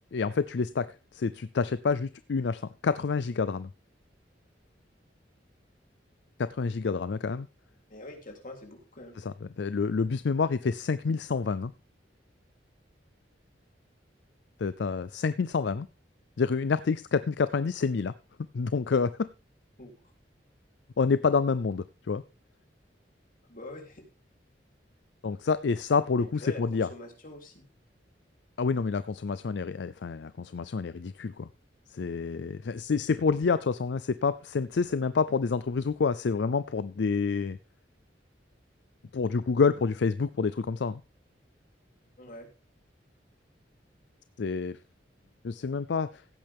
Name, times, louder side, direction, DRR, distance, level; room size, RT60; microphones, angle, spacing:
voice 1, 0.1-0.9 1.1-3.7 6.4-7.5 9.2-11.7 14.6-15.9 16.4-18.1 18.5-19.3 21.0-22.2 25.2-26.9 28.6-31.5 31.9-37.6 39.1-41.0 44.4-44.8 45.4-46.2, left 5 dB, 70° left, 15 dB, 0.4 m, -28 dB
voice 2, 7.9-9.2 19.8-19.9 23.5-24.1 26.2-26.6 26.9-27.7 42.2-42.5, left 2 dB, 50° left, 3 dB, 3.3 m, -44 dB
16.0 x 8.7 x 3.5 m, 0.32 s
head